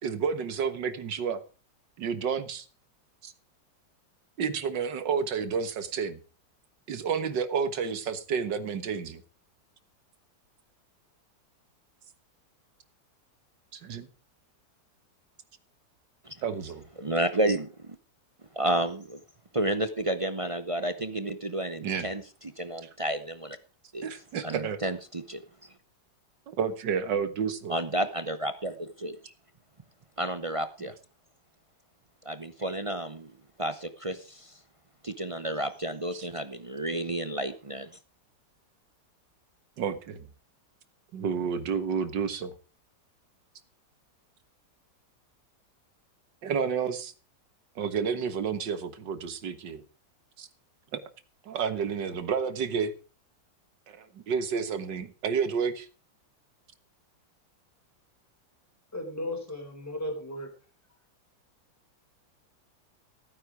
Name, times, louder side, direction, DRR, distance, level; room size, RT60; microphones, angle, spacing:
voice 1, 0.0-1.4 2.0-2.7 3.2-3.3 4.4-6.2 6.9-9.2 13.7-14.1 16.4-16.8 21.8-22.1 24.0-24.8 26.5-27.8 36.1-36.3 39.8-40.3 41.1-42.5 46.4-47.1 47.8-49.8 50.4-50.5 50.9-51.0 51.4-52.9 53.9-55.9, right 6 dB, 75° right, 11 dB, 2.0 m, -30 dB
voice 2, 17.0-18.0 18.5-19.2 19.5-22.2 22.6-23.6 23.9-24.1 24.4-25.4 27.7-29.3 30.2-30.9 32.2-33.3 33.6-34.5 35.0-37.9, right 1 dB, 35° right, 10 dB, 0.5 m, -31 dB
voice 3, 58.9-60.5, left 1 dB, 10° left, 3 dB, 4.1 m, -35 dB
15.5 x 9.6 x 5.0 m, 0.37 s
omnidirectional pair, 2.0 m